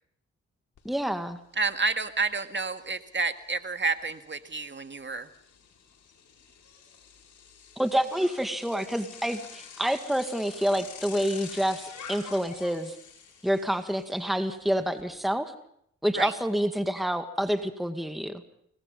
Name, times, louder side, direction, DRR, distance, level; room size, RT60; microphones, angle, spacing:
Bicycle, 0.8-0.9 1.2-15.0, left 6 dB, 70° left, 5.5 m, -48 dB
voice 1, 0.8-1.4 7.8-13.0 13.4-15.5 16.0-18.4, equal, ahead, 8 dB, 2.1 m, -28 dB
voice 2, 1.6-5.3 16.1-16.3, right 4 dB, 35° right, 9 dB, 2.0 m, -29 dB
25.5 x 20.0 x 5.4 m, 0.70 s
supercardioid pair, 50°, 31 cm